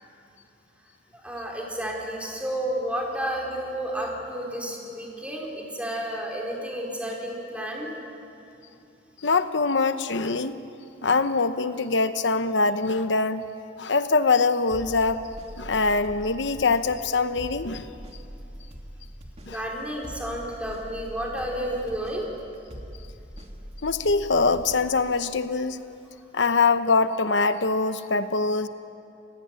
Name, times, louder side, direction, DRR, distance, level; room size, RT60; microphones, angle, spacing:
voice 1, 1.2-7.9 19.5-22.3, right 1 dB, 5° right, -1 dB, 4.6 m, -31 dB
voice 2, 9.2-10.6 11.0-13.4 13.8-15.2 15.6-17.9 19.5-19.6 23.8-25.8 26.3-28.7, left 4 dB, 70° left, 11 dB, 0.9 m, -23 dB
sound 1, 14.7-25.4, equal, 35° right, 2.7 m, -43 dB
29.5 x 16.5 x 9.7 m, 2.6 s
head